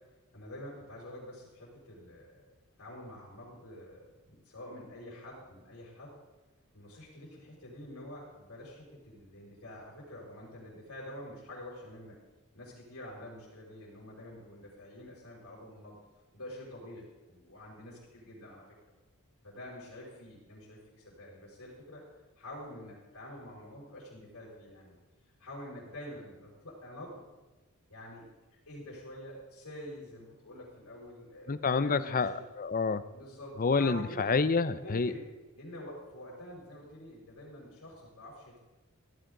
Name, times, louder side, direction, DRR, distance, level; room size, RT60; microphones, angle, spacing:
voice 1, 0.3-2.4 2.8-6.1 6.7-12.1 12.5-16.0 16.3-18.6 19.4-22.0 22.4-25.0 25.4-27.2 27.9-28.3 28.7-32.4 33.0-34.3 34.8-35.2 35.5-38.6, left 1 dB, 80° left, -6 dB, 5.5 m, -47 dB
voice 2, 31.5-33.0 33.6-35.1, left 4 dB, 40° left, 14 dB, 0.6 m, -28 dB
17.0 x 14.0 x 3.9 m, 1.2 s
head